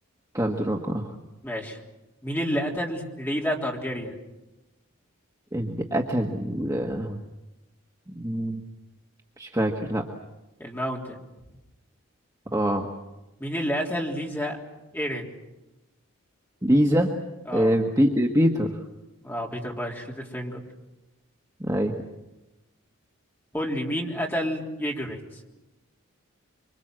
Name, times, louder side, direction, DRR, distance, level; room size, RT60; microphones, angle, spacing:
voice 1, 0.3-1.2 5.5-7.2 8.1-8.6 9.4-10.0 12.5-12.9 16.6-17.1 17.5-18.8 21.6-21.9, equal, 15° right, 1 dB, 1.5 m, -24 dB
voice 2, 1.4-1.8 2.2-4.2 10.6-11.2 13.4-14.6 14.9-15.3 17.5-17.8 19.2-20.6 23.5-25.2, equal, 10° left, -1 dB, 3.5 m, -29 dB
26.0 x 25.0 x 7.7 m, 1.0 s
head